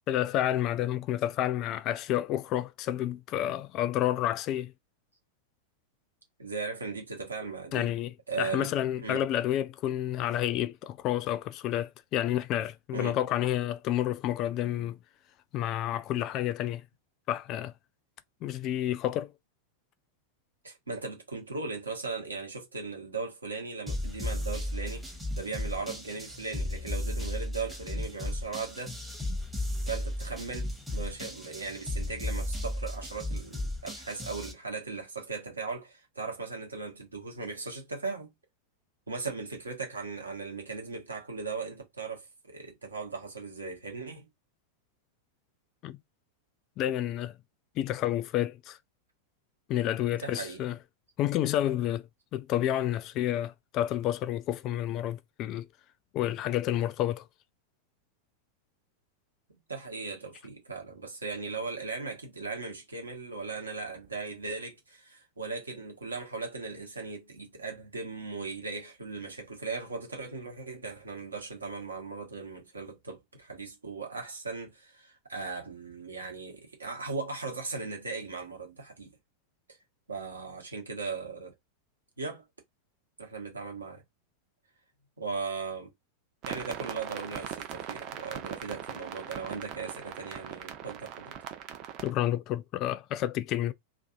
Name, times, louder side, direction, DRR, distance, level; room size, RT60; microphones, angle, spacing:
voice 1, 0.1-4.7 7.7-15.0 15.5-16.8 17.3-17.7 18.4-19.3 45.8-46.0 46.8-47.3 47.8-48.8 49.7-50.8 51.2-52.1 52.3-55.7 56.1-57.3 92.0-93.7, left 12 dB, 35° left, 0.3 m, -30 dB
voice 2, 6.4-7.9 8.3-9.2 12.9-13.2 20.6-25.1 25.4-29.0 29.8-38.3 39.1-44.3 50.2-50.6 59.7-79.1 80.1-81.5 82.2-82.4 83.2-84.0 85.2-85.9 86.5-91.4, right 4 dB, 75° right, 1.0 m, -38 dB
sound 1, 23.9-34.5, left 1 dB, 5° right, 0.7 m, -35 dB
sound 2, 86.4-92.1, right 10 dB, 40° right, 0.5 m, -40 dB
2.5 x 2.4 x 2.4 m
figure-of-eight pair, 90°, 0 cm